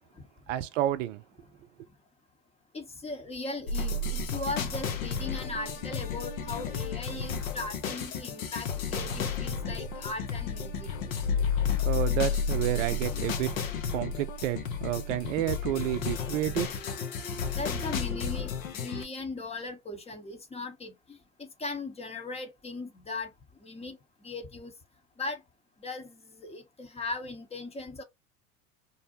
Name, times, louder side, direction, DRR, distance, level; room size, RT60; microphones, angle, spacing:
voice 1, 0.5-1.2 11.8-13.6 13.9-16.7 17.2-17.4, right 13 dB, 70° right, 0.5 m, -30 dB
voice 2, 2.7-10.9 17.6-23.3 23.6-24.7 25.2-25.4 25.8-28.0, left 3 dB, 15° left, 0.7 m, -38 dB
sound 1, 3.7-19.0, left 5 dB, 80° left, 0.7 m, -32 dB
2.6 x 2.0 x 2.8 m
hypercardioid pair, 80°, 40 cm